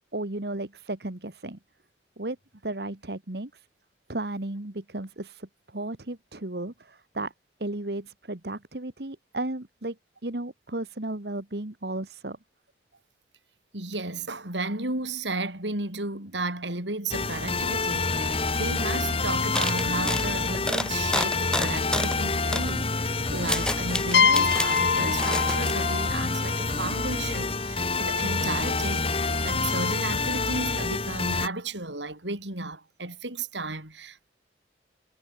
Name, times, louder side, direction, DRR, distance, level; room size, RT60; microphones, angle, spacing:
voice 1, 0.1-1.6 2.2-2.4 2.6-3.7 4.1-7.3 7.6-10.0 10.2-12.4, right 2 dB, 65° right, 1.8 m, -34 dB
voice 2, 13.7-34.3, right 2 dB, 90° right, 6.5 m, -34 dB
sound 1, 17.1-31.5, left 3 dB, 30° left, 2.1 m, -27 dB
sound 2, 18.4-18.5 18.8-19.0 19.5-22.2 22.5-22.7 23.2-24.8 25.2-25.7, left 1 dB, 5° left, 3.3 m, -30 dB
sound 3, 24.1-27.8, left 6 dB, 70° left, 1.2 m, -26 dB
head